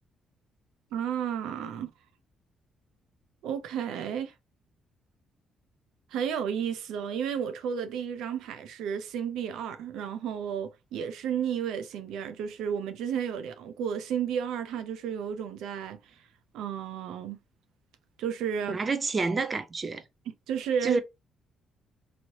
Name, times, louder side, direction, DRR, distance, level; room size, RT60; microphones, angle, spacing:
voice 1, 0.9-1.9 3.4-4.3 6.1-16.2 16.5-17.4 18.2-18.8 20.5-21.0, right 8 dB, 85° right, 0.4 m, -32 dB
voice 2, 18.7-20.0 20.8-21.0, right 4 dB, 35° right, 0.6 m, -28 dB
3.0 x 2.8 x 2.7 m
cardioid pair, 90°, 0 cm